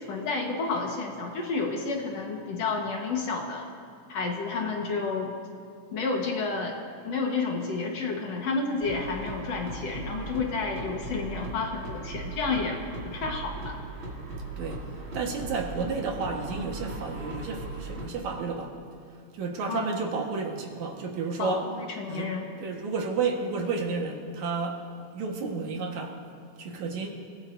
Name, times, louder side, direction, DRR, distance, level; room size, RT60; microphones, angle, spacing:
voice 1, 0.1-3.7 4.1-5.3 5.9-6.7 7.0-12.8 13.0-13.8 19.7-19.8 21.4-22.5, left 4 dB, 60° left, 1 dB, 2.3 m, -30 dB
sound 1, 8.8-18.1, right 2 dB, 45° right, 3.1 m, -38 dB
voice 2, 15.1-18.8 19.3-21.7 22.1-24.9 25.1-26.2 26.6-27.1, right 4 dB, 70° right, 1 dB, 2.7 m, -31 dB
28.0 x 17.5 x 2.6 m, 2.3 s
omnidirectional pair, 3.5 m